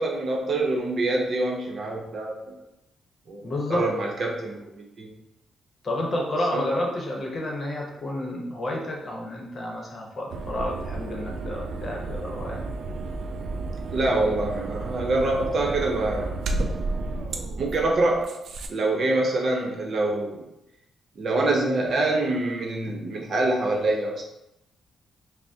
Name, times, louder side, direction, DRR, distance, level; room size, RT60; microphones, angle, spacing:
voice 1, 0.0-2.5 3.3-5.1 6.5-6.8 13.9-16.4 17.6-18.4 18.7-20.4 21.2-24.2, right 2 dB, 55° right, 0 dB, 0.8 m, -25 dB
voice 2, 3.4-3.9 5.8-12.7, left 1 dB, 40° left, -1 dB, 0.9 m, -30 dB
sound 1, 10.3-18.7, right 3 dB, 70° right, 0.3 m, -32 dB
5.9 x 2.1 x 2.7 m, 0.87 s
cardioid pair, 95°, 0 cm